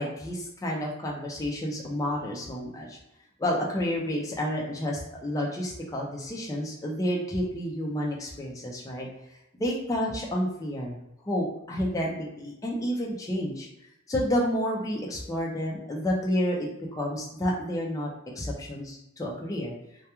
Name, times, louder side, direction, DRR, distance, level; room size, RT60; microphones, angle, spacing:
voice 1, 0.0-3.0 3.4-9.1 9.5-11.0 11.2-13.7 14.1-16.7 17.0-18.1 18.4-19.7, equal, 15° left, -2 dB, 0.4 m, -30 dB
2.3 x 2.1 x 2.9 m, 0.84 s
head